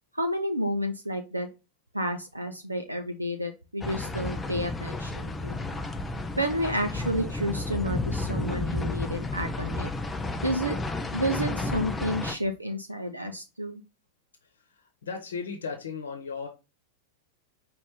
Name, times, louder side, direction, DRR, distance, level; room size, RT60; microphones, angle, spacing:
voice 1, 0.1-1.5 1.9-5.6 6.4-9.9 10.4-10.8 11.1-13.8, equal, 85° right, 5 dB, 0.5 m, -30 dB
sound 1, 3.8-12.3, left 2 dB, 15° left, 0.4 m, -32 dB
voice 2, 15.0-16.5, left 5 dB, 65° left, 4 dB, 0.9 m, -35 dB
5.2 x 2.5 x 3.5 m, 0.28 s
figure-of-eight pair, 90°, 0 cm